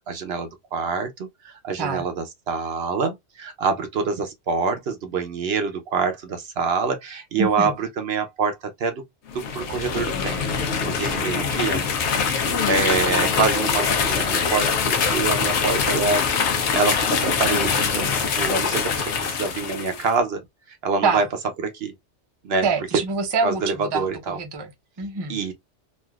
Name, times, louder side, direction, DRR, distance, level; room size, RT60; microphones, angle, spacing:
voice 1, 0.1-9.0 9.3-11.9 12.2-20.4 20.7-21.2 21.6-21.9 22.4-22.7 22.9-23.0 23.4-24.4 25.3-25.5, right 4 dB, 65° right, 0.8 m, -26 dB
voice 2, 7.3-7.7 21.0-21.2 22.6-24.7 25.0-25.4, right 4 dB, 30° right, 0.5 m, -25 dB
sound 1, 9.3-20.1, left 6 dB, 75° left, 1.0 m, -23 dB
3.2 x 2.5 x 2.3 m
omnidirectional pair, 1.2 m